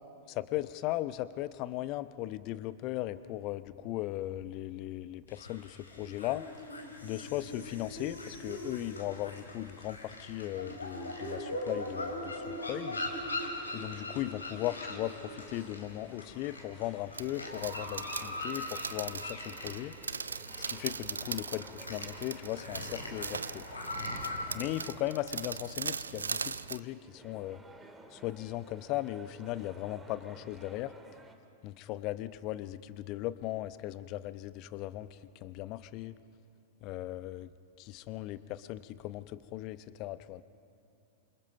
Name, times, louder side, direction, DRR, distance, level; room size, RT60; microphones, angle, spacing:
voice 1, 0.3-6.4 7.0-13.0 13.7-19.9 20.7-23.6 24.5-27.6 28.1-30.9 31.6-36.2 36.8-40.4, left 15 dB, 40° left, 15 dB, 0.8 m, -37 dB
sound 1, 5.3-24.6, left 1 dB, 85° left, 3.6 m, -41 dB
sound 2, 12.2-31.4, right 2 dB, 10° right, 2.0 m, -55 dB
sound 3, 17.1-26.8, right 5 dB, 75° right, 0.5 m, -40 dB
28.5 x 26.5 x 5.4 m, 2.6 s
figure-of-eight pair, 95°, 0 cm